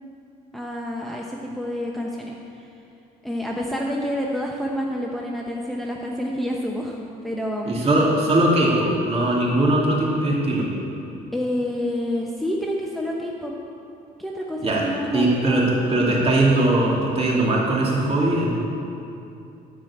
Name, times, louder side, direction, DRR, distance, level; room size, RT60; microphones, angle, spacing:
voice 1, 0.5-2.7 3.2-7.8 11.3-13.5 14.2-15.8, equal, ahead, -2 dB, 0.9 m, -28 dB
voice 2, 7.6-10.7 14.6-14.8 15.1-18.6, right 1 dB, 35° right, -4 dB, 2.7 m, -20 dB
13.0 x 5.1 x 8.5 m, 2.7 s
cardioid pair, 110°, 17 cm